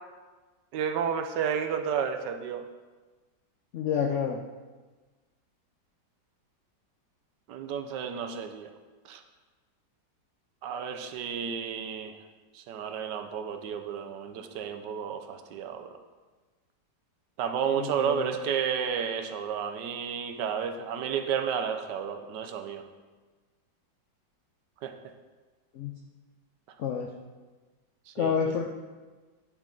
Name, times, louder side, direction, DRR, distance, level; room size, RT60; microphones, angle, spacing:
voice 1, 0.7-2.6 7.5-8.7 9.1-9.2 10.6-12.2 12.5-15.9 17.4-22.8 24.8-24.9 28.1-28.5, right 7 dB, 75° right, 7 dB, 1.2 m, -32 dB
voice 2, 3.7-4.4 17.8-18.3 25.7-25.9 26.8-27.1 28.2-28.7, left 7 dB, 85° left, 2 dB, 0.6 m, -29 dB
9.8 x 7.2 x 3.8 m, 1.3 s
omnidirectional pair, 2.0 m